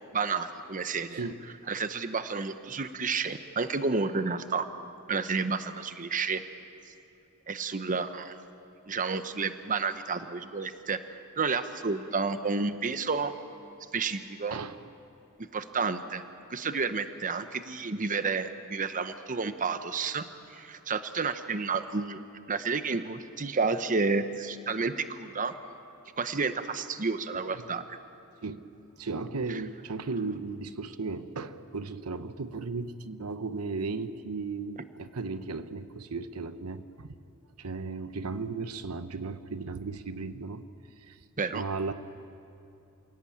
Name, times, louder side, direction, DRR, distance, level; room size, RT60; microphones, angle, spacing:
voice 1, 0.1-1.2 1.7-4.7 5.1-6.4 7.5-8.4 8.9-11.0 11.4-13.3 13.9-14.6 15.5-16.2 16.5-20.2 20.5-25.5 26.2-28.0 29.5-29.6 41.4-41.6, right 4 dB, 35° right, 10 dB, 0.9 m, -30 dB
voice 2, 29.0-37.1 37.6-40.6 41.0-41.2 41.5-41.9, right 4 dB, 85° right, 11 dB, 0.9 m, -35 dB
28.0 x 17.5 x 8.7 m, 2.7 s
head